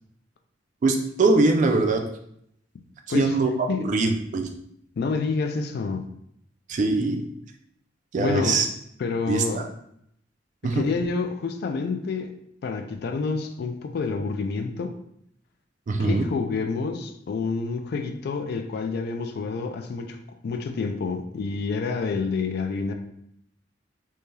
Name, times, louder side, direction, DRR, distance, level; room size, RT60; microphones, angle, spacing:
voice 1, 0.8-2.0 3.1-3.5 3.8-4.5 6.7-7.3 8.1-8.7 9.3-9.7 10.6-10.8 15.9-16.2, right 3 dB, 40° right, 4 dB, 0.3 m, -22 dB
voice 2, 5.0-6.0 8.2-8.6 9.0-9.6 10.7-12.3 12.6-15.0 16.0-20.2 20.4-22.9, left 4 dB, 55° left, 5 dB, 0.3 m, -28 dB
3.1 x 2.7 x 2.2 m, 0.71 s
head